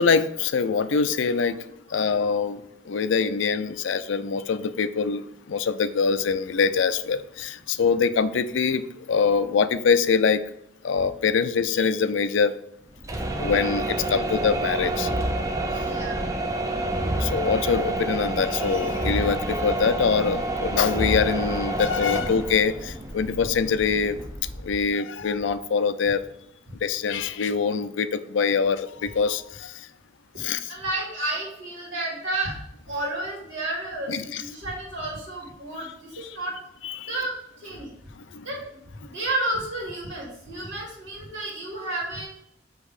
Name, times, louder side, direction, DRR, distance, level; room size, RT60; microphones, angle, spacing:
voice 1, 0.0-1.6 1.9-10.4 10.8-12.5 13.4-15.1 17.2-24.2 24.6-26.2 26.8-29.7 30.4-30.7 34.1-34.4 36.8-37.1, left 5 dB, 80° left, 12 dB, 0.4 m, -24 dB
sound 1, 13.0-24.9, right 2 dB, 15° right, 0.5 m, -28 dB
voice 2, 15.8-16.2 30.7-32.5 32.9-36.6 37.1-37.9 38.4-42.3, right 2 dB, 85° right, -3 dB, 2.1 m, -31 dB
7.4 x 2.9 x 4.8 m, 0.77 s
head